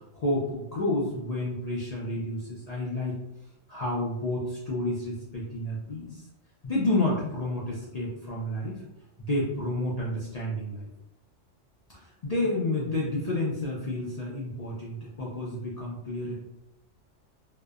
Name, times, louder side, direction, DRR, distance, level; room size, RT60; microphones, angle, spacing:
voice 1, 0.1-3.2 3.7-6.2 6.6-8.8 9.2-10.9 12.2-16.3, left 1 dB, 75° left, -6 dB, 0.3 m, -30 dB
2.7 x 2.0 x 2.3 m, 0.88 s
omnidirectional pair, 1.3 m